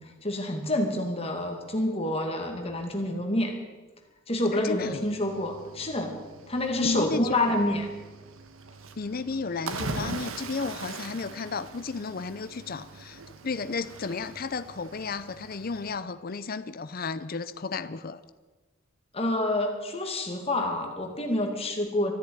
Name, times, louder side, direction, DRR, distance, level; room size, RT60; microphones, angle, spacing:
voice 1, 0.0-3.5 4.3-6.1 6.5-7.9 19.1-22.1, left 1 dB, 30° left, 2.3 m, -28 dB
voice 2, 4.5-5.0 6.8-7.3 9.0-18.2, left 4 dB, 45° left, 0.6 m, -33 dB
Cricket / Waves surf, 4.8-16.0, right 3 dB, 75° right, 1.2 m, -41 dB
14.0 x 10.5 x 9.2 m
head